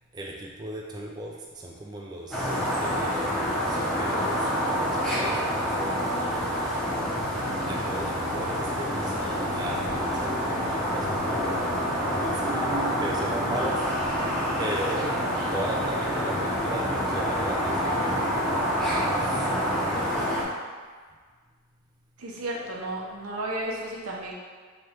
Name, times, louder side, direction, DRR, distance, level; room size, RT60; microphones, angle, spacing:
voice 1, 0.1-3.3 3.7-5.9 6.2-6.6 7.7-9.1 9.5-11.6 12.2-12.7 13.0-13.8 14.6-15.2 15.5-20.2, right 1 dB, 20° right, -2 dB, 0.3 m, -37 dB
sound 1, 2.3-20.4, equal, ahead, 0.8 m, -27 dB
voice 2, 22.2-24.3, right 1 dB, 85° right, -2 dB, 0.8 m, -33 dB
3.3 x 3.0 x 4.3 m, 1.5 s
head